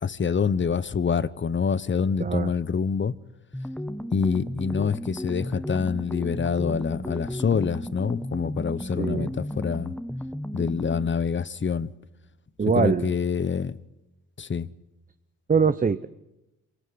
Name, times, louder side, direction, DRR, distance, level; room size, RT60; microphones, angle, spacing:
voice 1, 0.0-3.1 4.1-9.9 10.5-11.9 12.7-13.8 14.4-14.7, left 6 dB, 35° left, 1.1 m, -26 dB
sound 1, 3.5-11.2, equal, 5° left, 1.6 m, -34 dB
voice 2, 8.8-9.3 12.6-13.1 15.5-16.1, right 5 dB, 25° right, 0.8 m, -23 dB
26.0 x 18.0 x 9.6 m
supercardioid pair, 60°, 34 cm